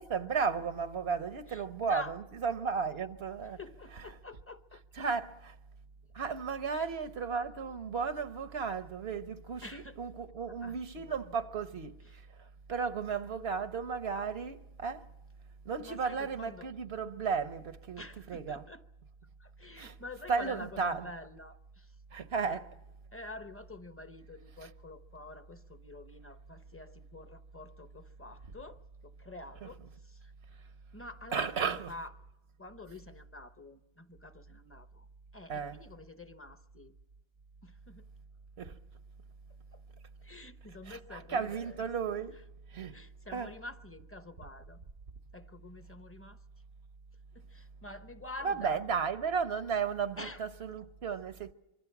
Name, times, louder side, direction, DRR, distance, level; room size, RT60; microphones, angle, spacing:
voice 1, 0.0-3.6 5.0-5.5 6.1-15.1 15.6-18.6 19.8-19.9 20.3-21.1 22.1-22.7 24.6-24.7 29.6-29.7 31.3-31.9 35.5-35.8 38.6-38.8 40.9-42.4 42.7-43.0 43.3-43.5 48.4-51.5, right 5 dB, 80° right, 1.2 m, -34 dB
voice 2, 1.5-2.2 3.6-4.8 6.7-6.9 9.6-10.0 10.5-11.4 12.0-12.2 15.8-16.7 18.0-18.9 19.4-22.0 22.4-22.6 23.1-30.3 30.9-32.1 32.6-35.1 35.3-37.0 37.6-38.1 39.7-39.8 40.2-41.8 42.9-44.9 45.3-46.4 47.3-48.8 50.2-50.5, left 2 dB, 15° left, 0.8 m, -48 dB
25.5 x 24.0 x 6.0 m
omnidirectional pair, 1.0 m